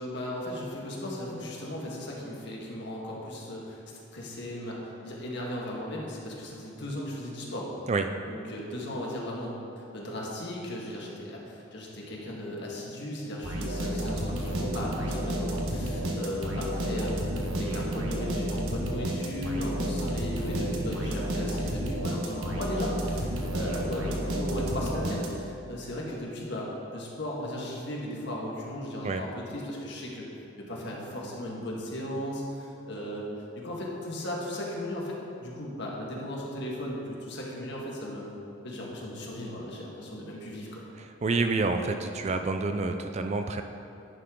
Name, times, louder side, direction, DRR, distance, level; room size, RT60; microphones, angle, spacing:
voice 1, 0.0-3.8 4.1-7.7 8.3-30.2 30.6-33.3 33.5-38.3 38.6-40.8, left 1 dB, 55° left, -3 dB, 1.6 m, -36 dB
sound 1, 13.4-25.6, right 1 dB, 90° right, 1.2 m, -31 dB
voice 2, 41.0-43.6, right 3 dB, 35° right, 6 dB, 0.3 m, -28 dB
10.5 x 6.7 x 3.8 m, 2.9 s
head